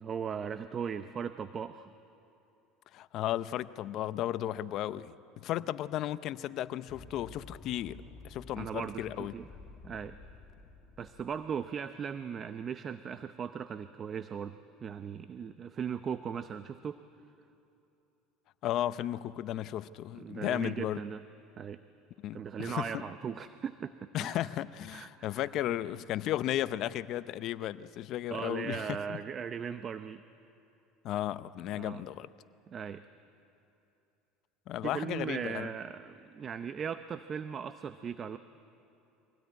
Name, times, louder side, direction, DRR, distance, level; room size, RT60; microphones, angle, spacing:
voice 1, 0.0-1.9 8.6-9.5 9.8-10.2 11.0-17.0 20.1-21.2 21.6-21.8 22.3-24.5 24.9-25.5 28.3-30.2 31.7-32.0 32.7-33.0 34.8-38.4, right 7 dB, 35° right, 11 dB, 0.6 m, -38 dB
voice 2, 2.9-9.3 18.6-21.0 22.2-22.9 24.1-29.2 31.0-32.3 34.7-35.7, left 13 dB, 55° left, 15 dB, 0.7 m, -34 dB
sound 1, 6.9-11.6, left 3 dB, 35° left, 2.0 m, -52 dB
24.0 x 17.5 x 9.4 m, 2.9 s
supercardioid pair, 110°, 0 cm